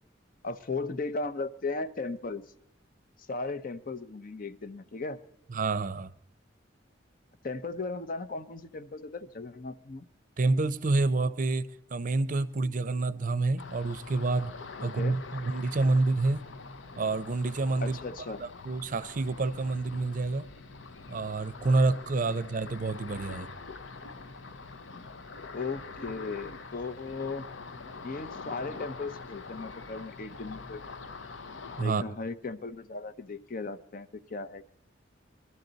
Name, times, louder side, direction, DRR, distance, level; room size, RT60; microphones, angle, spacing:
voice 1, 0.4-2.4 3.3-5.2 7.4-10.0 14.8-15.2 17.8-18.4 25.5-27.4 28.0-30.8 31.8-34.6, left 3 dB, 45° left, 0.6 m, -36 dB
voice 2, 5.5-6.1 10.4-14.5 14.8-16.4 17.0-18.0 18.4-20.5 21.1-23.5 31.8-32.0, right 3 dB, 45° right, 0.6 m, -28 dB
Ocean, 13.6-31.8, left 4 dB, 80° left, 0.8 m, -44 dB
21.0 x 12.5 x 4.0 m
head